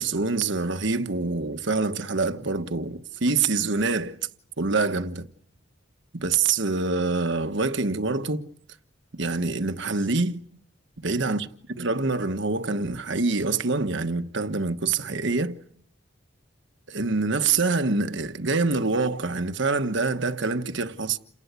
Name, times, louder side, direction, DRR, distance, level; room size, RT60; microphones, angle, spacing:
voice 1, 0.0-4.2 4.6-5.3 6.1-8.5 9.1-10.4 11.0-11.5 11.8-15.6 16.9-21.2, right 3 dB, 65° right, 1.3 m, -25 dB
29.0 x 20.0 x 8.2 m
head